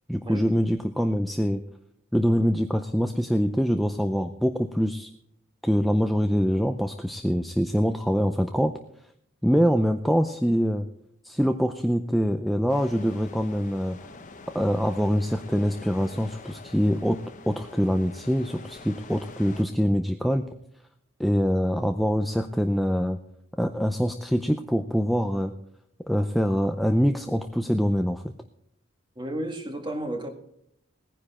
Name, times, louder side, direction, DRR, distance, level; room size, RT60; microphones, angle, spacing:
voice 1, 0.1-1.6 2.1-5.1 5.6-8.7 9.4-10.9 11.2-14.0 14.5-20.4 21.2-23.2 23.6-25.5 26.1-28.3, equal, ahead, 6 dB, 0.5 m, -24 dB
sound 1, 12.7-19.6, left 3 dB, 40° left, 1.1 m, -45 dB
voice 2, 29.1-30.3, right 1 dB, 25° right, 5 dB, 1.8 m, -32 dB
17.5 x 10.0 x 4.2 m, 0.73 s
head